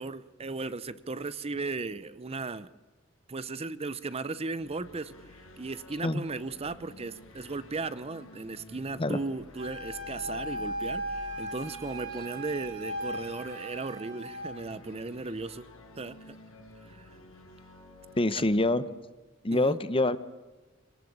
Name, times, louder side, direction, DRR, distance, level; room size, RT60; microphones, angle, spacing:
voice 1, 0.0-2.7 3.3-5.1 5.6-15.7 16.0-16.4 16.9-17.2 18.3-18.4 19.5-19.8, right 3 dB, 30° right, 15 dB, 0.7 m, -36 dB
sound 1, 4.6-18.6, left 1 dB, 85° left, 5.8 m, -51 dB
Wind instrument woodwind instrument, 9.6-14.5, equal, 65° right, 5.6 m, -37 dB
voice 2, 18.2-18.8 19.4-20.2, left 2 dB, 25° left, 14 dB, 0.9 m, -25 dB
25.5 x 19.0 x 8.7 m, 1.2 s
head